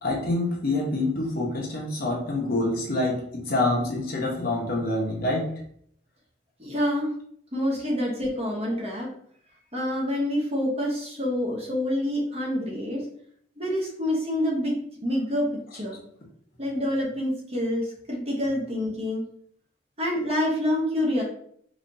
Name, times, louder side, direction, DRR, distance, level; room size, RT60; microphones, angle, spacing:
voice 1, 0.0-5.5, left 2 dB, 50° left, -2 dB, 1.0 m, -26 dB
voice 2, 6.6-7.1 7.5-9.1 9.7-13.0 13.6-14.8 15.0-15.5 15.7-16.0 16.6-19.2 20.0-21.2, left 1 dB, 30° right, -3 dB, 1.0 m, -27 dB
4.2 x 2.9 x 2.6 m, 0.65 s
head